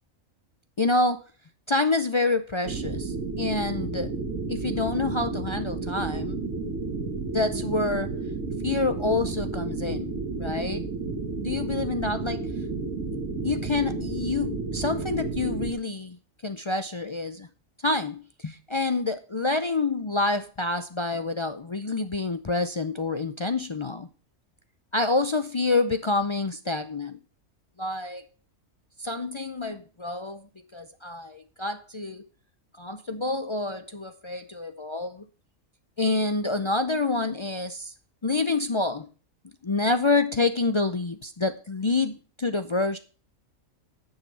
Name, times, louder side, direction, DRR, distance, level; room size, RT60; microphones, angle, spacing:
voice 1, 0.8-1.2 1.7-4.1 4.5-6.4 7.3-8.1 8.6-10.1 10.4-10.8 11.1-12.4 13.4-16.2 16.4-17.5 17.8-24.1 24.9-27.2 27.8-28.2 29.0-30.4 30.7-32.3 32.8-35.3 36.0-37.9 38.2-39.1 39.6-43.0, left 3 dB, 50° left, 9 dB, 0.3 m, -27 dB
sound 1, 2.6-15.7, right 4 dB, 70° right, 2.1 m, -31 dB
10.0 x 6.5 x 6.1 m, 0.38 s
omnidirectional pair, 1.4 m